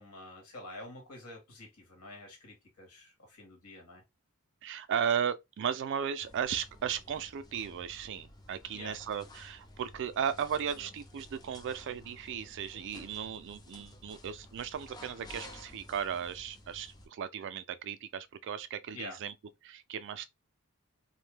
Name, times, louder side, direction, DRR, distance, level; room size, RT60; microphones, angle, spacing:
voice 1, 0.0-4.0 8.7-9.0 18.9-19.2, left 2 dB, 85° left, 1.4 m, -48 dB
voice 2, 4.6-19.3 19.6-20.3, right 8 dB, 55° right, 0.3 m, -36 dB
sound 1, 6.2-17.1, left 1 dB, 20° left, 0.5 m, -53 dB
2.5 x 2.1 x 3.2 m
head